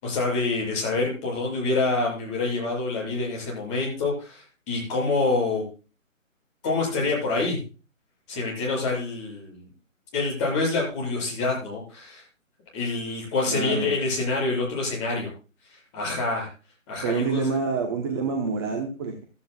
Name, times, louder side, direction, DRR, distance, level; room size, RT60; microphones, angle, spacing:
voice 1, 0.0-5.6 6.6-7.6 8.3-9.7 10.1-12.2 12.7-15.3 15.7-16.5 16.9-17.6, left 3 dB, 20° left, -3 dB, 7.6 m, -26 dB
voice 2, 13.5-13.9 17.0-19.2, right 5 dB, 20° right, 3 dB, 1.1 m, -27 dB
16.0 x 12.5 x 2.4 m, 0.34 s
figure-of-eight pair, 145°, 41 cm